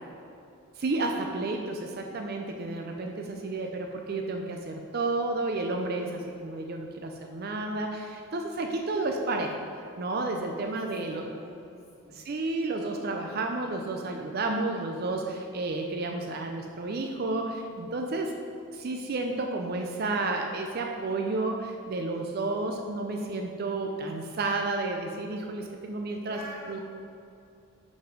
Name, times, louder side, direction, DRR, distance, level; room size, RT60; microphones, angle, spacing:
voice 1, 0.8-11.3 12.1-18.4 18.7-26.4 26.7-26.8, right 2 dB, 45° right, 3 dB, 0.4 m, -31 dB
voice 2, 3.4-3.7 6.1-6.4 10.3-12.2 26.2-26.8, equal, 15° left, -7 dB, 1.6 m, -47 dB
5.7 x 5.3 x 5.1 m, 2.5 s
head